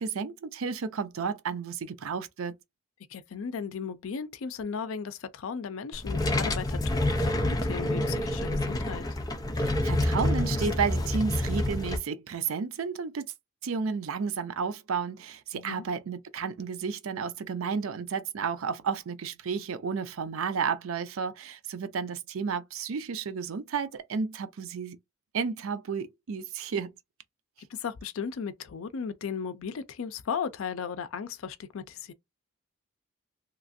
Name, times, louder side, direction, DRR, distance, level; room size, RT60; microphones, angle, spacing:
voice 1, 0.0-2.6 9.6-13.3 13.6-25.0 25.3-26.9, right 5 dB, 85° right, 0.5 m, -32 dB
voice 2, 3.1-9.1 15.5-15.9 27.7-32.1, left 6 dB, 80° left, 0.4 m, -36 dB
sound 1, 5.9-12.0, left 1 dB, 20° left, 0.5 m, -28 dB
2.9 x 2.5 x 2.6 m
head